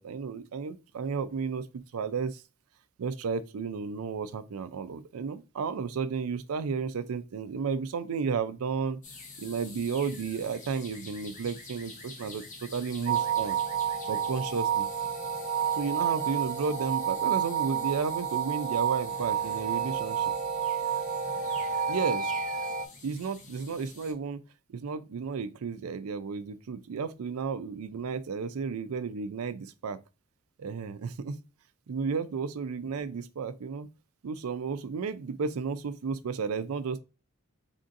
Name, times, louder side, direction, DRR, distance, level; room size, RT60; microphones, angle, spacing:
voice 1, 0.0-2.4 3.0-9.0 9.4-13.6 14.0-14.9 15.7-20.3 21.9-22.3 23.0-24.4 24.7-30.0 30.6-31.4 31.9-33.9 34.2-37.0, right 5 dB, 90° right, 0.4 m, -33 dB
sound 1, 9.0-24.1, left 3 dB, 35° left, 0.9 m, -47 dB
sound 2, 13.1-22.9, right 7 dB, 40° right, 0.5 m, -30 dB
3.9 x 3.5 x 2.5 m
head